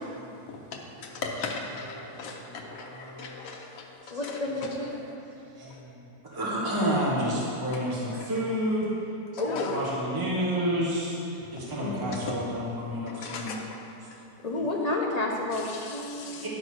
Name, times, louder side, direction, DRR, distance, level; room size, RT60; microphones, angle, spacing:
voice 1, 0.5-4.7 5.7-5.8 8.1-8.3 9.3-9.8 12.1-12.4 13.0-14.2 15.5-16.5, left 4 dB, 65° left, 0 dB, 1.3 m, -39 dB
voice 2, 2.1-3.3 4.1-4.2 5.5-8.9 9.6-13.5 16.3-16.5, equal, 15° right, -7 dB, 1.4 m, -30 dB
voice 3, 4.1-4.9 9.4-9.7 11.8-12.1 14.4-16.5, left 2 dB, 30° left, -2 dB, 0.9 m, -30 dB
10.5 x 4.0 x 6.2 m, 2.7 s
omnidirectional pair, 1.7 m